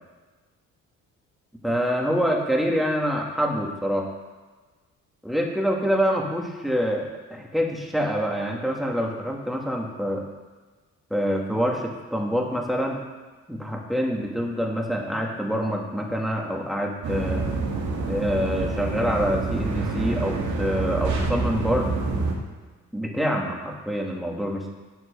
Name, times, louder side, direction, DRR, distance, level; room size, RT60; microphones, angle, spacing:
voice 1, 1.6-4.1 5.2-10.2 11.1-13.0 13.5-17.5 18.1-21.9 22.9-24.7, equal, ahead, 0 dB, 2.1 m, -26 dB
sound 1, 17.0-22.3, right 3 dB, 70° right, 2.1 m, -27 dB
8.2 x 8.0 x 6.7 m, 1.3 s
cardioid pair, 90°, 30 cm